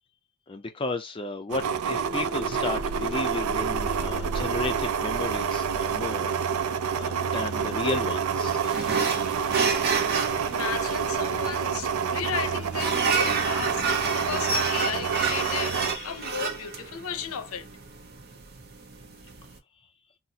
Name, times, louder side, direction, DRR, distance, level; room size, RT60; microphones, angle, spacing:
voice 1, 0.5-6.3 6.6-8.6, left 2 dB, 25° left, 0.4 m, -33 dB
sound 1, 1.5-16.0, right 6 dB, 90° right, 0.4 m, -28 dB
Subway metro underground, 1.9-16.3, left 2 dB, 5° right, 0.7 m, -45 dB
sound 2, 8.7-19.6, right 5 dB, 50° right, 0.7 m, -30 dB
voice 2, 10.2-13.8 14.1-17.7, left 7 dB, 85° left, 0.6 m, -34 dB
4.0 x 2.0 x 2.7 m
head